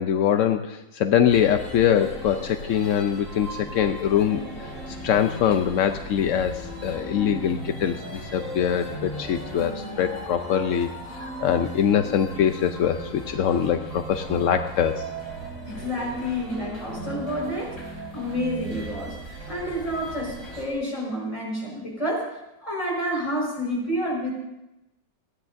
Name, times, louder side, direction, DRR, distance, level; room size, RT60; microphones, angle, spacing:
voice 1, 0.0-4.4 5.0-15.0, left 9 dB, 70° left, 7 dB, 0.7 m, -23 dB
sound 1, 1.3-20.7, right 1 dB, 45° left, 3.3 m, -37 dB
voice 2, 15.7-17.8 18.1-22.3 22.6-24.3, equal, 20° left, -3 dB, 4.7 m, -29 dB
29.5 x 10.0 x 2.6 m, 0.93 s
omnidirectional pair, 1.8 m